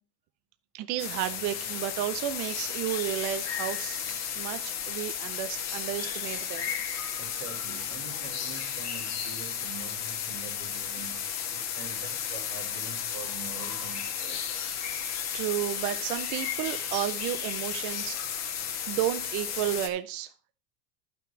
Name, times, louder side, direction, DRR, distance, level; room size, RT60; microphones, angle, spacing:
voice 1, 0.7-6.7 15.3-18.2 18.5-20.5, right 13 dB, 35° right, 11 dB, 0.4 m, -32 dB
sound 1, 1.0-19.9, left 8 dB, 35° left, 1.4 m, -34 dB
voice 2, 7.2-14.6, right 6 dB, 75° right, 3 dB, 2.7 m, -45 dB
10.5 x 5.9 x 4.6 m, 0.37 s
supercardioid pair, 145°, 47 cm